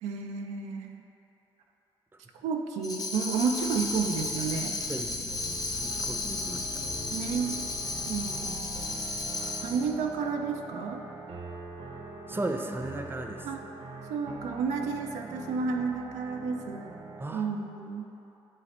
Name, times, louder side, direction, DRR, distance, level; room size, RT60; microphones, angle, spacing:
voice 1, 0.0-1.0 2.4-4.8 7.1-7.6 8.1-8.7 9.6-11.0 13.4-13.6 14.1-16.9 17.3-18.1, right 5 dB, 85° right, 3 dB, 0.4 m, -31 dB
Tambourine, 2.8-9.9, left 2 dB, 30° left, 0.9 m, -34 dB
sound 1, 3.2-10.2, left 6 dB, 60° left, 0.5 m, -45 dB
voice 2, 4.9-5.2 5.6-6.8 9.4-9.5 12.3-13.5 17.2-17.5, right 2 dB, 20° right, 4 dB, 0.6 m, -36 dB
sound 2, 5.3-17.3, right 3 dB, 65° right, 0.8 m, -44 dB
8.1 x 3.9 x 4.3 m, 3.0 s
supercardioid pair, 55°, 11 cm